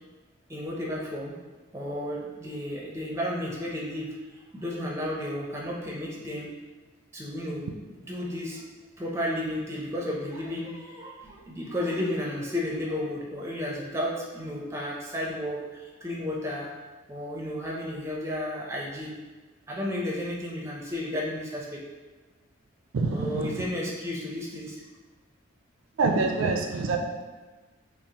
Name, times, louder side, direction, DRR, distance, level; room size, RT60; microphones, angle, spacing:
voice 1, 0.5-1.3 1.7-4.1 4.5-6.5 7.1-8.6 9.0-16.7 17.1-19.1 19.7-21.8 23.1-24.8, left 1 dB, 15° right, -3 dB, 0.5 m, -33 dB
voice 2, 22.9-23.6 26.0-27.0, right 3 dB, 70° right, 3 dB, 0.4 m, -26 dB
5.5 x 2.0 x 2.8 m, 1.3 s
head